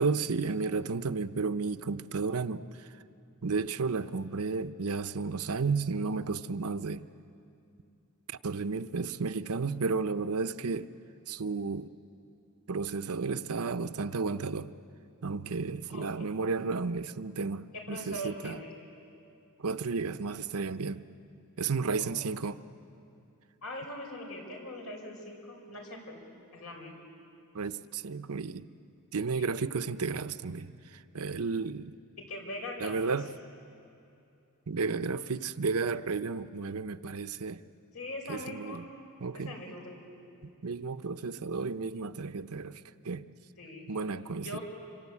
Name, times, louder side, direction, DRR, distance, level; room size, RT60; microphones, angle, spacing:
voice 1, 0.0-2.6 3.4-7.0 8.3-10.9 11.3-11.9 12.7-14.7 15.2-18.6 19.6-21.0 21.6-22.6 27.5-28.7 29.1-31.9 32.8-33.3 34.7-37.6 38.3-38.8 39.2-39.5 40.6-43.2 43.9-44.6, right 4 dB, 90° right, 0.8 m, -33 dB
voice 2, 17.7-18.7 22.0-22.3 23.6-26.3 26.5-27.0 29.4-29.6 32.2-32.9 37.9-38.8 39.3-40.2 43.6-43.9 44.4-44.6, left 1 dB, 90° left, 5.9 m, -41 dB
26.5 x 25.5 x 8.5 m
head